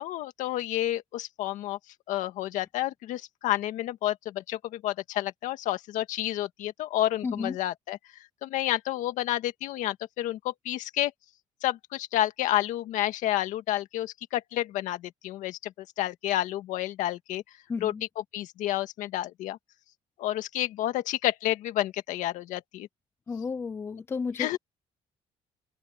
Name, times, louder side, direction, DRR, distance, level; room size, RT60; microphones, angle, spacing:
voice 1, 0.0-1.8 2.1-8.0 8.4-11.1 11.6-17.4 17.8-17.9 18.3-19.6 20.2-22.9 24.4-24.6, left 14 dB, 90° left, 1.8 m, -30 dB
voice 2, 7.2-7.6 17.7-18.0 23.3-24.5, left 5 dB, 20° left, 0.5 m, -32 dB
open air
cardioid pair, 175°, 13 cm